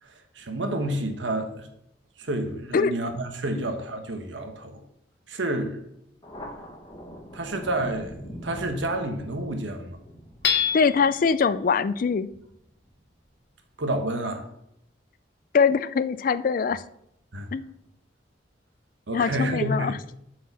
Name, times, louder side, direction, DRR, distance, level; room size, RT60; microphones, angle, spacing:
voice 1, 0.0-1.7 2.2-4.8 5.3-5.8 7.3-10.0 10.6-10.8 13.8-14.5 17.3-17.5 19.1-20.0, right 1 dB, 75° right, 6 dB, 1.2 m, -29 dB
Thunder, 6.2-13.3, equal, 25° left, 1.1 m, -44 dB
Hammer / Chink clink, 10.4-11.2, left 8 dB, 65° left, 1.0 m, -25 dB
voice 2, 10.7-12.3 15.5-16.8 17.5-17.7 19.1-19.9, left 5 dB, 45° left, 15 dB, 0.3 m, -23 dB
8.0 x 4.8 x 6.0 m, 0.76 s
head